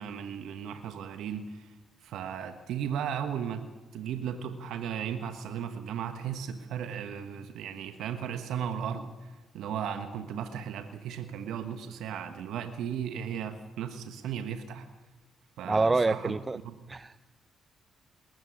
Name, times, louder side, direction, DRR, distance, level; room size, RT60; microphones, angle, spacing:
voice 1, 0.0-1.8 2.0-3.6 3.9-14.9 15.6-16.4 16.6-16.7, right 8 dB, 70° right, 8 dB, 1.2 m, -36 dB
voice 2, 15.6-16.6 16.9-17.2, right 3 dB, 30° right, 15 dB, 0.6 m, -26 dB
20.0 x 14.5 x 9.9 m, 1.2 s
hypercardioid pair, 45°, 0 cm